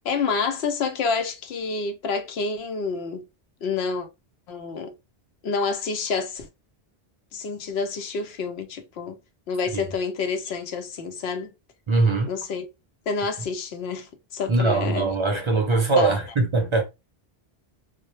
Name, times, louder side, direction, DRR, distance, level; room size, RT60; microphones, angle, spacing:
voice 1, 0.0-3.3 3.6-4.1 4.5-4.9 5.4-6.5 7.3-9.2 9.5-11.5 12.3-12.7 13.1-15.1 16.0-16.2, left 4 dB, 85° left, 0.9 m, -28 dB
voice 2, 11.9-12.3 14.5-16.8, right 3 dB, 40° right, 0.4 m, -21 dB
2.2 x 2.1 x 2.8 m
omnidirectional pair, 1.0 m